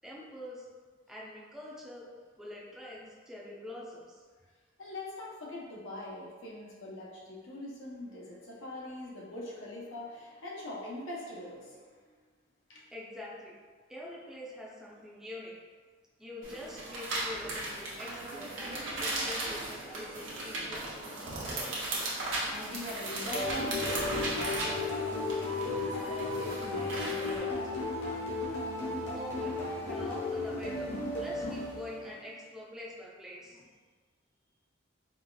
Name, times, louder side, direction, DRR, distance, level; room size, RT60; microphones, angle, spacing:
voice 1, 0.0-0.7 1.1-2.1 2.4-4.2 12.9-13.6 13.9-15.5 16.2-22.0 29.1-29.5 29.8-30.9 31.2-33.7, left 1 dB, 5° right, -5 dB, 0.4 m, -45 dB
voice 2, 4.8-12.1 12.7-12.9 22.5-27.7, left 1 dB, 90° left, -5 dB, 0.7 m, -42 dB
sound 1, 16.4-27.4, right 2 dB, 80° right, 0.8 m, -36 dB
sound 2, 23.3-32.2, left 2 dB, 60° left, 1.0 m, -34 dB
4.0 x 2.3 x 2.2 m, 1.5 s
head